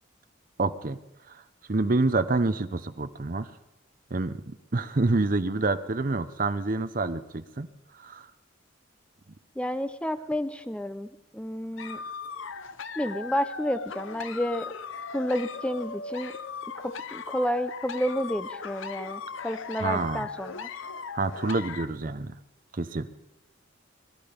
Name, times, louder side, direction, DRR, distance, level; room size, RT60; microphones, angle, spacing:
voice 1, 0.6-1.0 1.3-1.4 1.7-3.5 4.1-7.7 7.9-8.3 11.9-12.0 19.8-20.3 21.1-22.4 22.7-23.1, right 3 dB, 40° right, 11 dB, 0.7 m, -27 dB
voice 2, 9.6-12.0 13.0-14.7 15.1-16.3 16.8-20.7, equal, 5° left, 11 dB, 0.6 m, -30 dB
sound 1, 11.8-21.9, left 5 dB, 70° left, 0.7 m, -38 dB
21.5 x 12.0 x 5.2 m, 0.89 s
head